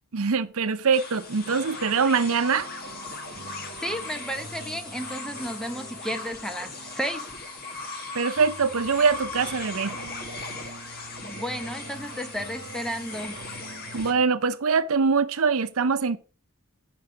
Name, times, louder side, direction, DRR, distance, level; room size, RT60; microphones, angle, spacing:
voice 1, 0.1-2.7 8.1-10.0 13.9-16.2, right 5 dB, 70° right, 0.6 m, -23 dB
sound 1, 0.9-14.1, left 3 dB, 45° left, 1.6 m, -38 dB
sound 2, 1.5-14.2, right 2 dB, 55° right, 1.0 m, -45 dB
voice 2, 3.8-7.3 11.2-13.4, equal, 5° left, 0.7 m, -33 dB
8.8 x 6.1 x 5.0 m
head